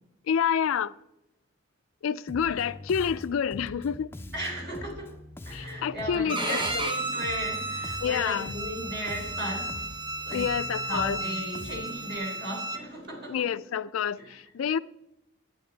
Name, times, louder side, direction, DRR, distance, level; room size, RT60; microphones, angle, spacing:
voice 1, 0.3-0.9 2.0-4.1 5.5-6.9 8.0-8.6 10.3-11.2 13.3-14.8, left 7 dB, 70° left, 0.4 m, -28 dB
Bass guitar, 2.3-12.2, left 1 dB, 10° left, 0.4 m, -43 dB
voice 2, 4.3-5.2 5.4-10.0 10.2-10.5 10.9-13.5 14.2-14.4, equal, 55° right, 3.3 m, -36 dB
Bowed string instrument, 6.3-12.8, right 2 dB, 20° right, 0.8 m, -33 dB
10.0 x 9.4 x 4.0 m
head